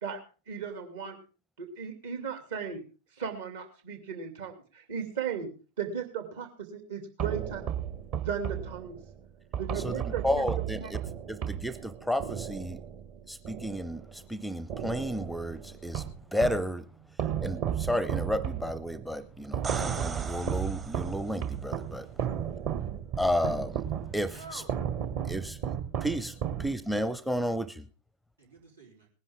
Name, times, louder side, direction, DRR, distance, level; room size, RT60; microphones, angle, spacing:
voice 1, 0.5-1.2 1.6-2.8 3.2-5.5 5.8-7.6 8.2-9.0 9.6-10.9, right 7 dB, 60° right, 6 dB, 2.6 m, -36 dB
sound 1, 7.2-14.3 14.7-16.7 17.2-27.1, right 9 dB, 40° right, 1.4 m, -34 dB
voice 2, 10.2-10.8 11.3-12.8 13.3-14.0 14.3-16.0 16.3-16.8 17.4-22.1 23.2-23.8 24.1-24.3 25.3-25.6 26.0-26.3 26.6-27.7, equal, ahead, 19 dB, 0.6 m, -31 dB
sound 2, 19.4-21.4 25.1-25.2, right 4 dB, 20° right, 0.9 m, -39 dB
voice 3, 21.8-22.9 24.3-24.8 28.4-29.1, right 3 dB, 75° right, -1 dB, 3.9 m, -50 dB
19.0 x 10.5 x 3.6 m, 0.36 s
figure-of-eight pair, 90°, 0 cm